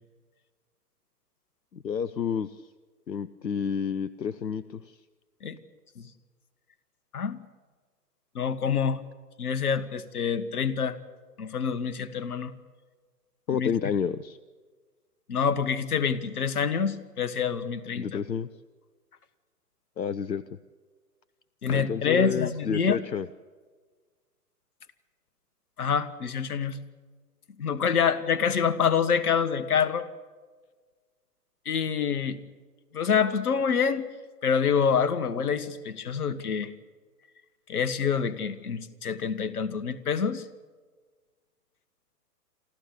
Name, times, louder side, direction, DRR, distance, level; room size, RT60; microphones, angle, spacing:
voice 1, 1.7-2.6 3.1-4.9 13.5-14.4 17.9-18.5 20.0-20.4 21.6-23.3, left 7 dB, 85° left, 15 dB, 0.8 m, -30 dB
voice 2, 8.4-9.0 9.4-11.0 11.4-12.5 13.5-13.7 15.3-18.1 21.6-23.0 25.8-26.8 27.6-30.1 31.7-32.4 32.9-34.1 34.4-36.7 37.7-40.4, left 6 dB, 65° left, 11 dB, 1.6 m, -26 dB
28.0 x 13.5 x 8.5 m, 1.4 s
figure-of-eight pair, 120°, 49 cm